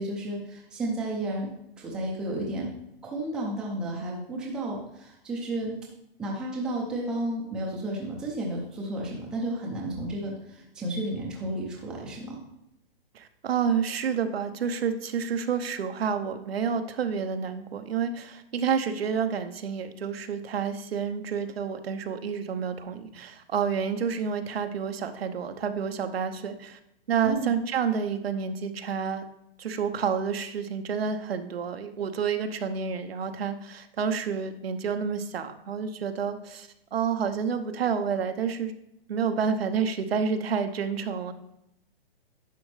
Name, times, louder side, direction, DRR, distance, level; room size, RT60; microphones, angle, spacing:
voice 1, 0.0-1.5 1.8-2.7 3.0-5.7 6.2-12.4 27.2-27.5, right 1 dB, 5° right, -3 dB, 0.5 m, -32 dB
voice 2, 13.1-26.8 27.1-29.2 29.6-38.7 39.1-41.3, right 6 dB, 90° right, 8 dB, 0.9 m, -29 dB
10.5 x 6.1 x 3.2 m, 0.82 s
hypercardioid pair, 165°, 30 cm